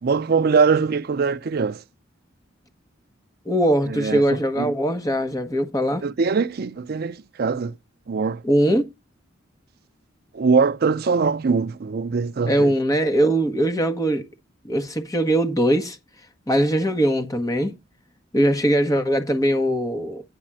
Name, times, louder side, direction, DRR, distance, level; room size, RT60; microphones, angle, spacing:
voice 1, 0.0-1.8 3.9-4.7 6.0-7.8 8.1-8.4 10.3-12.7, right 5 dB, 50° right, 0.5 m, -22 dB
voice 2, 3.4-6.0 8.4-8.9 12.5-14.3 14.6-16.0 16.5-17.7 18.3-20.2, right 1 dB, 20° left, 1.4 m, -21 dB
9.9 x 4.1 x 7.5 m
head